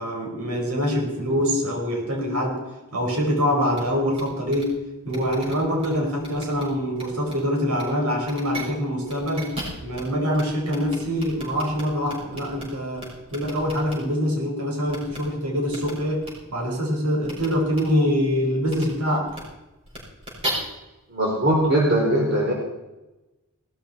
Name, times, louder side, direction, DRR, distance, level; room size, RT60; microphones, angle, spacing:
voice 1, 0.0-2.6 2.9-4.8 5.0-9.5 9.8-16.3 16.5-19.3, equal, 85° right, 1 dB, 5.2 m, -24 dB
sound 1, 3.7-3.8 4.1-4.2 4.5-4.6 5.1-5.9 6.2-6.6 6.9-7.3 7.7-7.8 8.2-8.6 9.1-10.0 10.3-10.4 10.7-12.6 13.0-13.9 14.9-15.2 15.7-15.9 16.2-16.3 17.2-17.5 17.7-17.8 18.7-18.8 19.3-19.4 19.9-20.5, right 1 dB, 25° right, 6.1 m, -35 dB
voice 2, 21.1-22.5, right 1 dB, 50° right, -3 dB, 4.0 m, -20 dB
18.0 x 13.5 x 4.5 m, 1.0 s
head